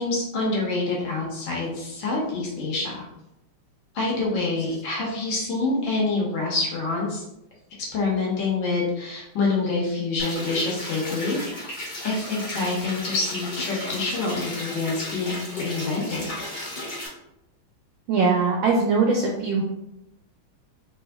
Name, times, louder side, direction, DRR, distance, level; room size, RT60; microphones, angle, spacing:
voice 1, 0.0-3.0 3.9-7.2 7.9-11.7 12.0-16.2, left 3 dB, 70° left, -3 dB, 1.5 m, -26 dB
sound 1, 10.2-17.1, left 1 dB, 90° left, 0.4 m, -34 dB
voice 2, 18.1-19.6, right 4 dB, 75° right, 0 dB, 1.2 m, -21 dB
3.4 x 3.2 x 2.2 m, 0.86 s
omnidirectional pair, 2.3 m